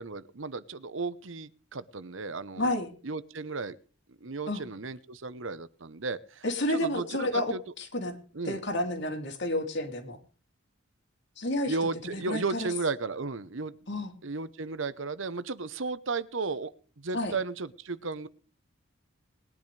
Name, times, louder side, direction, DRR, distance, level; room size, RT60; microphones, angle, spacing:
voice 1, 0.0-2.7 3.0-3.8 4.1-7.6 8.3-8.6 11.7-13.7 14.2-16.7 17.0-18.3, right 4 dB, 65° right, 15 dB, 0.9 m, -34 dB
voice 2, 2.6-2.9 4.5-4.6 6.4-8.1 8.4-10.2 11.4-11.7 12.1-12.7 13.9-14.1 17.1-17.3, left 1 dB, 55° left, 5 dB, 2.9 m, -30 dB
21.0 x 10.5 x 3.3 m, 0.41 s
head